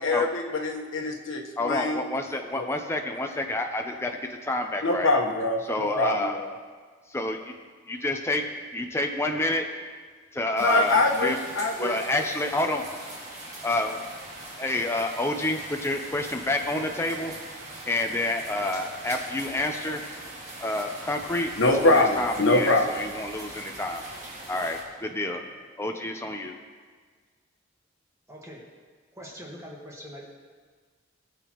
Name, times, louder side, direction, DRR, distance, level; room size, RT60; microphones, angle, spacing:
voice 1, 0.0-2.0 2.6-2.7 4.8-6.5 10.6-11.9 21.6-22.9, left 2 dB, 80° left, 2 dB, 1.3 m, -24 dB
voice 2, 1.6-5.1 5.6-6.4 7.1-7.5 7.9-9.7 10.3-11.4 11.8-13.1 13.6-14.0 14.6-17.4 17.9-20.1 20.6-24.0 24.5-25.4 25.8-26.6, left 2 dB, 15° left, 3 dB, 0.6 m, -29 dB
sound 1, 10.6-24.8, right 1 dB, 35° right, 2.1 m, -42 dB
voice 3, 28.3-28.6 29.1-30.3, equal, 15° right, -3 dB, 1.5 m, -42 dB
18.5 x 7.0 x 3.1 m, 1.5 s
head